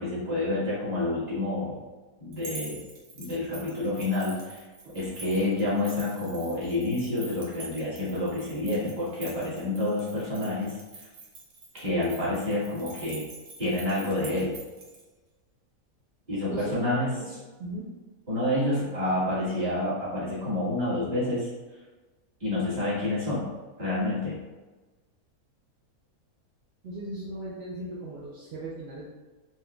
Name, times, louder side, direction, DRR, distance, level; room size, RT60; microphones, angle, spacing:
voice 1, 0.0-1.8 2.2-2.8 3.1-4.7 4.9-10.8 11.7-13.2 13.6-14.6 16.3-17.2 18.3-21.5 22.4-23.5 23.8-24.4, left 2 dB, 30° right, -10 dB, 1.3 m, -28 dB
sound 1, 2.3-15.0, right 3 dB, 90° right, 1.2 m, -45 dB
voice 2, 16.4-17.3 17.6-17.9 26.8-29.1, right 1 dB, 65° right, -6 dB, 0.6 m, -38 dB
4.3 x 2.3 x 2.2 m, 1.2 s
omnidirectional pair, 1.6 m